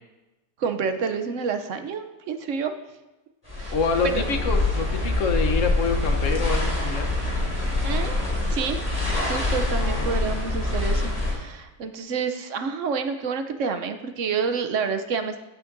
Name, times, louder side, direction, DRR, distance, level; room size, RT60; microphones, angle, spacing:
voice 1, 0.6-2.7 3.6-3.7 4.1-4.3 7.8-8.8 9.3-15.4, right 5 dB, 60° right, 7 dB, 0.9 m, -28 dB
sound 1, 3.5-11.3, left 2 dB, 20° left, 3.3 m, -25 dB
voice 2, 3.7-7.1 9.8-10.1, left 4 dB, 55° left, 5 dB, 1.2 m, -26 dB
14.5 x 8.5 x 2.6 m, 1.1 s
omnidirectional pair, 1.6 m